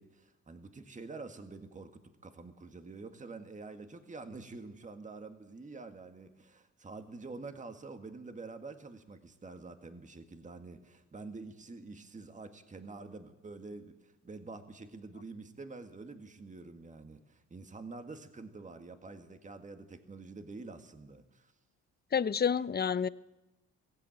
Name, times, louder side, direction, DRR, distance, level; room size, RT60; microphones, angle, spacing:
voice 1, 0.0-21.5, right 3 dB, 25° right, 1.7 m, -47 dB
voice 2, 22.1-23.1, left 7 dB, 30° left, 0.7 m, -29 dB
22.5 x 15.0 x 9.1 m
cardioid pair, 90°, 30 cm